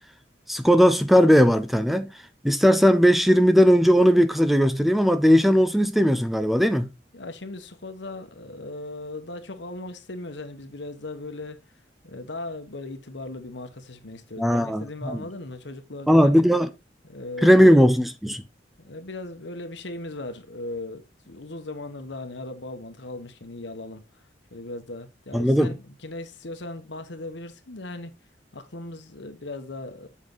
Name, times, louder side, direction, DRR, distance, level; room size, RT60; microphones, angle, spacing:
voice 1, 0.5-2.1 2.4-6.9 14.4-15.1 16.1-16.7 17.4-18.4 25.3-25.7, equal, ahead, 0.5 m, -18 dB
voice 2, 7.1-11.6 12.0-16.4 17.0-17.8 18.8-24.0 24.5-28.1 28.5-30.1, left 2 dB, 75° left, 1.3 m, -38 dB
7.5 x 5.6 x 3.9 m
head